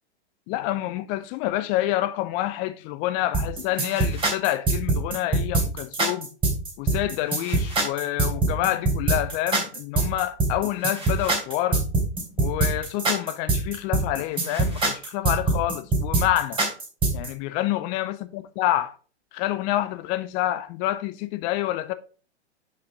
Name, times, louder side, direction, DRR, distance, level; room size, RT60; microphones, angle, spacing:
voice 1, 0.5-6.3 6.8-11.8 12.4-16.6 17.1-18.9 19.3-21.9, left 14 dB, 20° left, 0.4 m, -27 dB
sound 1, 3.3-17.3, right 3 dB, 15° right, 3.1 m, -23 dB
6.8 x 5.3 x 3.7 m
figure-of-eight pair, 105°, 34 cm